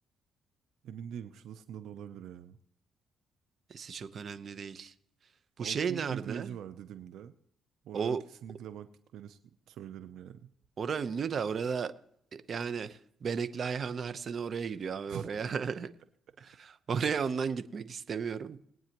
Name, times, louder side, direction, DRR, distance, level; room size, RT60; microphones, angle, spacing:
voice 1, 0.8-2.6 5.6-7.3 7.8-10.5 15.1-15.3, right 9 dB, 80° right, 0.7 m, -44 dB
voice 2, 3.7-4.9 5.6-6.6 7.9-8.2 10.8-11.9 12.3-15.9 16.4-18.6, right 6 dB, 50° right, 0.9 m, -34 dB
21.0 x 9.1 x 3.0 m
cardioid pair, 90°, 0 cm